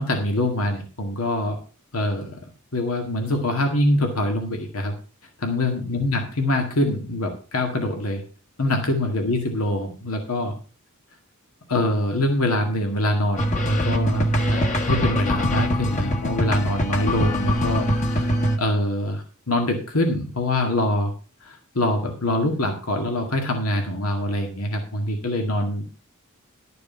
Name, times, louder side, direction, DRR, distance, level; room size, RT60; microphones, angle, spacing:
voice 1, 0.0-1.6 1.9-2.4 2.7-4.9 5.4-8.2 8.6-10.5 11.7-21.1 21.4-25.8, left 1 dB, 80° left, 4 dB, 2.0 m, -24 dB
sound 1, 13.4-18.6, equal, 35° left, 1.5 m, -23 dB
12.0 x 6.8 x 5.5 m, 0.37 s
head